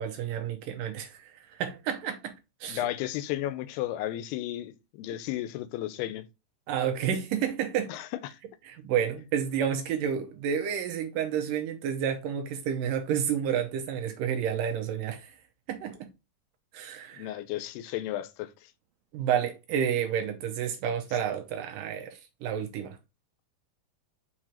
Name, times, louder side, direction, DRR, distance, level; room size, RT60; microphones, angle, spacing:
voice 1, 0.0-2.3 2.6-2.9 6.7-7.9 8.7-15.3 15.7-16.0 16.7-17.4 19.1-23.0, right 8 dB, 75° right, 2.2 m, -30 dB
voice 2, 2.7-6.3 7.9-8.4 17.2-18.5, left 13 dB, 85° left, 2.7 m, -33 dB
5.9 x 4.8 x 4.3 m
omnidirectional pair, 4.5 m